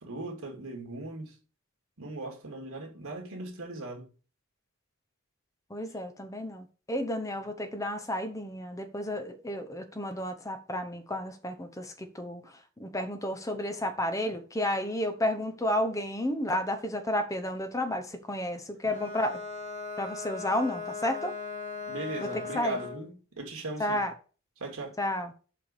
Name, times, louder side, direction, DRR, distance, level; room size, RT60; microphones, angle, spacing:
voice 1, 0.0-1.3 2.0-4.1 21.9-24.0 24.6-24.9, right 2 dB, 80° right, 2.5 m, -38 dB
voice 2, 5.7-19.4 20.0-21.3 22.2-22.8 23.8-24.1 25.0-25.3, left 1 dB, 15° left, 0.8 m, -32 dB
Bowed string instrument, 18.8-23.1, left 5 dB, 35° left, 1.4 m, -38 dB
5.5 x 5.1 x 6.6 m
head